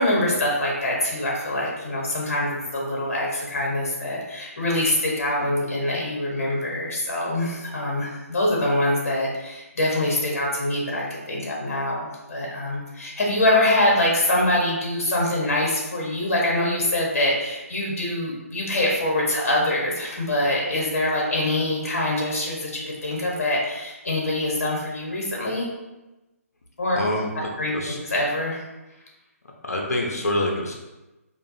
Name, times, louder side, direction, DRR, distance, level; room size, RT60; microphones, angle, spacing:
voice 1, 0.0-25.7 26.8-27.0 27.6-28.6, left 1 dB, 60° left, -3 dB, 1.4 m, -24 dB
voice 2, 26.9-28.0 29.6-30.8, left 1 dB, 85° left, 0 dB, 0.8 m, -26 dB
5.1 x 2.4 x 2.8 m, 1.0 s
hypercardioid pair, 155°, 8 cm